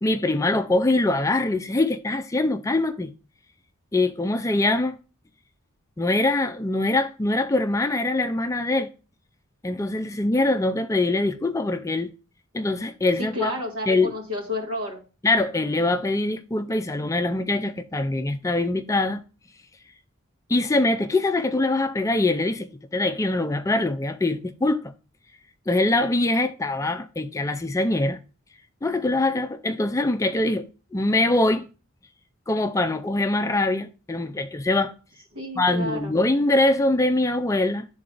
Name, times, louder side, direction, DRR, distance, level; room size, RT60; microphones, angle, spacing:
voice 1, 0.0-3.1 3.9-5.0 6.0-8.9 9.6-12.1 12.5-13.5 13.9-14.2 15.2-19.2 20.5-24.9 25.7-28.2 28.8-31.7 32.5-34.9 35.6-37.9, left 2 dB, 15° left, 0.4 m, -23 dB
voice 2, 13.2-15.0 35.3-36.2, left 2 dB, 85° right, 2.2 m, -31 dB
11.0 x 3.9 x 2.5 m
head